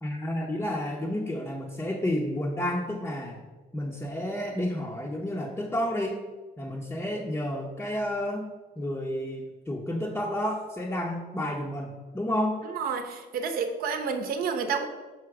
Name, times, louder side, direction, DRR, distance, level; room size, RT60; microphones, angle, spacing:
voice 1, 0.0-3.4 3.7-6.2 6.6-8.5 8.8-12.6, left 1 dB, 10° left, -2 dB, 0.7 m, -31 dB
voice 2, 12.7-14.9, right 5 dB, 60° right, 6 dB, 0.8 m, -30 dB
5.7 x 4.9 x 4.7 m, 1.3 s
cardioid pair, 110°, 17 cm